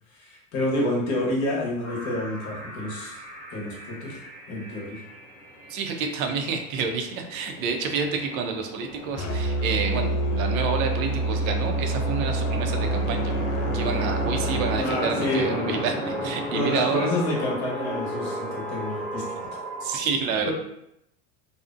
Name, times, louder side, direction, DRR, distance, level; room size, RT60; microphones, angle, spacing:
voice 1, 0.1-3.2 3.5-4.2 4.5-5.0 14.8-15.8 16.5-19.6 20.4-20.5, left 1 dB, 40° left, -2 dB, 0.9 m, -28 dB
sound 1, 1.8-20.0, equal, 5° left, 0.4 m, -34 dB
voice 2, 5.7-13.3 13.7-17.1 19.8-20.5, right 5 dB, 70° right, 4 dB, 0.6 m, -29 dB
Musical instrument, 9.2-14.8, right 2 dB, 70° left, 0.5 m, -27 dB
2.5 x 2.0 x 2.4 m, 0.78 s
supercardioid pair, 120°, 42 cm